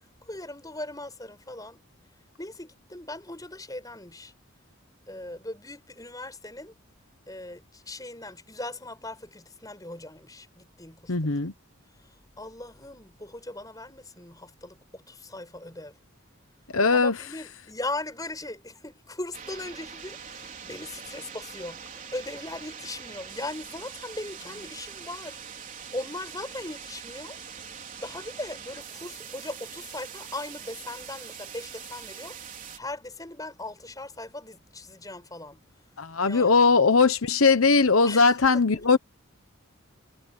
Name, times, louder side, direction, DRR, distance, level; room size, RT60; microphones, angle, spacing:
voice 1, 0.2-1.8 2.4-4.3 5.1-6.7 7.3-11.1 12.0-16.0 16.9-25.6 25.9-27.4 27.6-27.7 28.0-35.6 36.2-36.7 38.0-38.6, left 2 dB, 15° left, 5.6 m, -39 dB
voice 2, 11.1-11.5 16.7-17.1 36.0-39.0, left 4 dB, 80° left, 1.1 m, -20 dB
sound 1, 19.3-32.8, right 7 dB, 40° right, 4.3 m, -43 dB
head